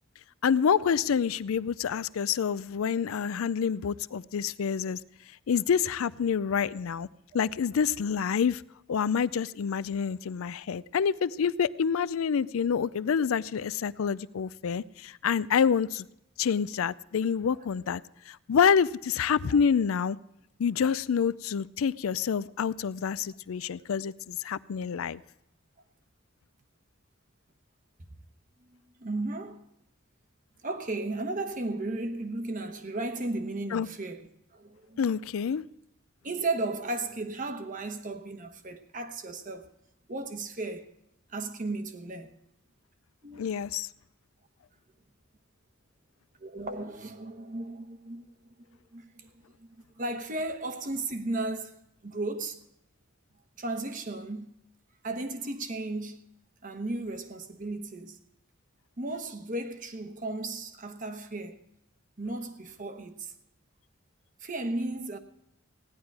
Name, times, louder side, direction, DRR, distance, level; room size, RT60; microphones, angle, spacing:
voice 1, 0.4-5.0 5.5-7.1 7.3-8.6 8.9-16.1 16.4-18.0 18.3-20.2 20.6-25.2 33.7-33.9 35.0-35.6 43.4-43.9, left 7 dB, 85° left, 0.4 m, -27 dB
voice 2, 29.0-29.6 30.6-34.3 34.5-35.1 36.2-39.7 40.1-40.9 41.3-42.3 43.2-43.4 46.4-48.3 48.9-49.3 49.6-52.6 53.6-54.5 55.0-56.2 56.6-58.2 59.0-61.6 62.2-63.3 64.4-65.2, right 2 dB, 40° right, 1.0 m, -35 dB
16.5 x 10.5 x 4.7 m
head